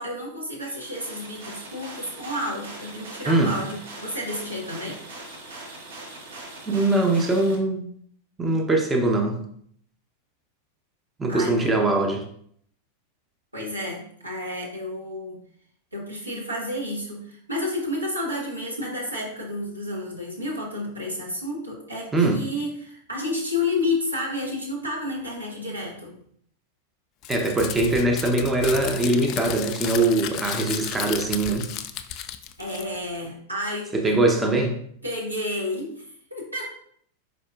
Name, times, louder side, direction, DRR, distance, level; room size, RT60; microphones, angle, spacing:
voice 1, 0.0-5.0 11.3-11.7 13.5-15.4 15.9-26.2 32.6-34.2 35.0-36.0 36.3-36.8, left 2 dB, 85° right, -4 dB, 1.4 m, -31 dB
sound 1, 0.6-7.5, right 2 dB, 65° right, 1.2 m, -41 dB
voice 2, 6.7-7.9 8.4-9.4 11.2-12.2 22.1-22.4 27.3-31.7 33.9-34.8, right 2 dB, 15° right, 2 dB, 0.6 m, -22 dB
Crumpling crinkling, 27.2-33.2, left 10 dB, 40° left, 0.3 m, -33 dB
4.9 x 4.2 x 2.4 m, 0.64 s
figure-of-eight pair, 90°, 0 cm